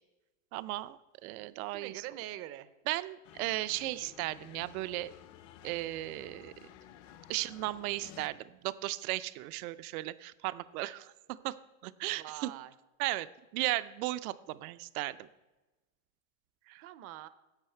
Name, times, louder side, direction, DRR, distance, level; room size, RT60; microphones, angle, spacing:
voice 1, 0.5-1.9 2.9-5.1 5.6-6.5 7.3-11.6 11.8-12.5 13.0-13.3 13.5-15.3 16.7-16.9, right 17 dB, 80° right, 15 dB, 0.6 m, -36 dB
voice 2, 1.7-2.7 12.1-12.7 16.8-17.3, right 14 dB, 35° right, 14 dB, 0.5 m, -44 dB
sound 1, 3.2-8.3, left 11 dB, 40° left, 0.5 m, -54 dB
10.5 x 7.7 x 4.4 m, 1.1 s
supercardioid pair, 145°, 43 cm